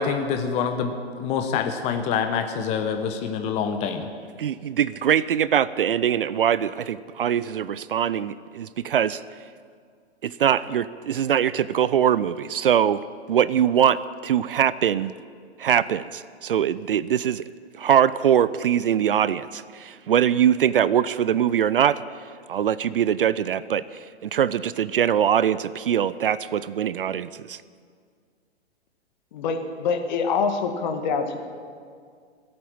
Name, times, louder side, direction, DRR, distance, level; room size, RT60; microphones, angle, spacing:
voice 1, 0.0-4.1, left 6 dB, 20° left, 6 dB, 0.9 m, -26 dB
voice 2, 4.4-9.2 10.2-13.0 13.3-15.1 15.6-17.4 17.8-22.0 22.5-27.6, right 9 dB, 55° right, 17 dB, 0.5 m, -22 dB
voice 3, 29.3-31.5, left 5 dB, 45° left, 5 dB, 1.8 m, -25 dB
17.5 x 8.7 x 8.8 m, 2.1 s
figure-of-eight pair, 115°, 33 cm